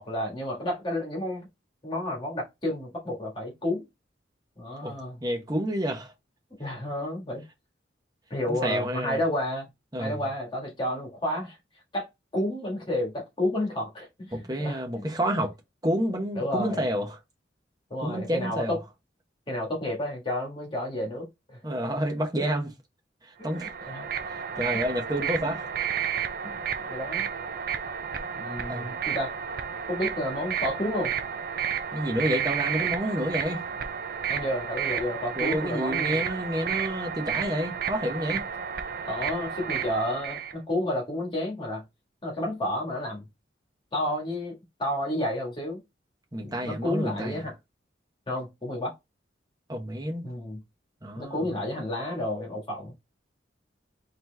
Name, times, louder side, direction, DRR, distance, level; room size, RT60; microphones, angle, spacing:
voice 1, 0.0-1.5 1.8-3.8 4.6-5.2 6.6-7.4 8.3-9.7 10.0-11.6 11.9-12.1 12.3-15.4 16.3-16.9 17.9-18.8 19.5-21.6 23.4-24.1 25.4-25.5 26.4-26.6 26.8-27.3 28.3-29.3 29.9-31.1 34.3-36.2 39.0-41.8 42.2-43.2 43.9-45.8 46.4-47.5 48.3-48.9 50.2-50.6 51.1-52.9, left 1 dB, 25° left, 1.6 m, -31 dB
voice 2, 5.2-6.1 8.5-9.2 9.9-10.2 14.3-15.5 15.8-17.2 18.0-18.8 21.6-22.7 23.2-23.9 24.3-25.7 28.7-28.9 31.9-33.6 35.4-38.4 46.3-47.5 49.7-50.3 51.0-51.5, equal, 20° right, 1.0 m, -29 dB
sound 1, 23.4-40.5, right 8 dB, 50° right, 0.5 m, -31 dB
4.2 x 2.9 x 3.3 m
head